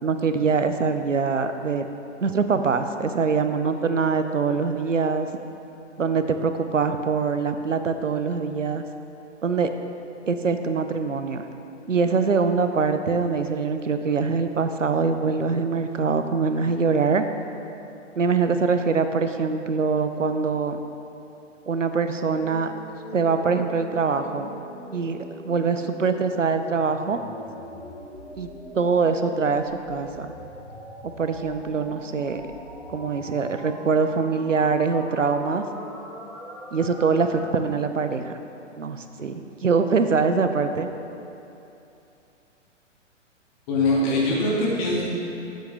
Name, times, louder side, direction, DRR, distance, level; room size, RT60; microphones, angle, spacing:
voice 1, 0.0-1.9 2.2-5.3 6.0-8.8 9.4-9.7 10.3-11.4 11.9-17.2 18.2-20.8 21.7-22.7 23.1-24.5 24.9-27.2 28.4-28.5 28.7-30.3 31.0-32.4 32.9-35.6 36.7-38.3 38.8-40.9, right 5 dB, 75° right, 8 dB, 0.8 m, -23 dB
sound 1, 22.4-37.4, equal, 5° right, 1.7 m, -41 dB
voice 2, 43.7-45.0, left 2 dB, 30° left, -5 dB, 2.4 m, -22 dB
14.0 x 7.8 x 3.5 m, 2.8 s
figure-of-eight pair, 120°, 37 cm